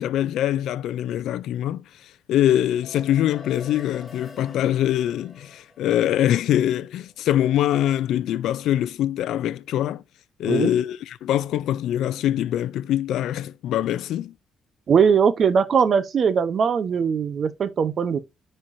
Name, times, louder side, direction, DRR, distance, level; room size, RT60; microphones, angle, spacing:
voice 1, 0.0-10.0 10.4-14.3, left 11 dB, 85° left, 0.4 m, -23 dB
sound 1, 2.7-7.2, left 3 dB, 25° left, 2.8 m, -46 dB
voice 2, 14.9-18.2, right 6 dB, 50° right, 0.8 m, -20 dB
9.6 x 4.5 x 2.6 m
cardioid pair, 110°, 0 cm